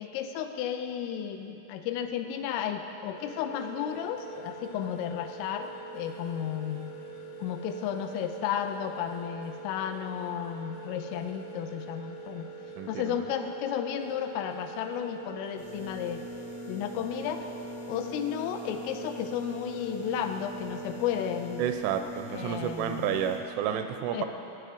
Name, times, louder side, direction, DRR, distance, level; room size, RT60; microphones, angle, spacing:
voice 1, 0.0-6.9 7.4-12.5 12.9-16.2 16.7-17.5 17.9-21.7 22.3-23.2 24.1-24.3, left 9 dB, 85° left, 6 dB, 3.1 m, -33 dB
sound 1, 3.1-21.6, right 4 dB, 60° left, 1.7 m, -44 dB
voice 2, 12.8-13.2 21.6-24.3, right 9 dB, 85° right, 7 dB, 2.9 m, -30 dB
sound 2, 15.6-23.4, left 2 dB, 15° left, 0.8 m, -43 dB
16.0 x 9.6 x 5.2 m, 2.9 s
omnidirectional pair, 5.8 m